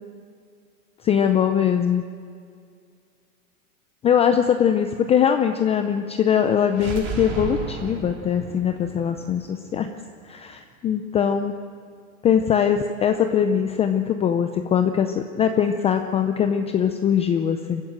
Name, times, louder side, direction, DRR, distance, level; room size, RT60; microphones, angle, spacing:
voice 1, 1.0-2.0 4.0-9.9 10.3-11.5 12.2-17.8, left 8 dB, 15° left, 7 dB, 0.5 m, -21 dB
sound 1, 6.7-10.5, right 5 dB, 40° right, 4.5 m, -35 dB
23.5 x 14.5 x 7.7 m, 2.2 s
hypercardioid pair, 130°, 44 cm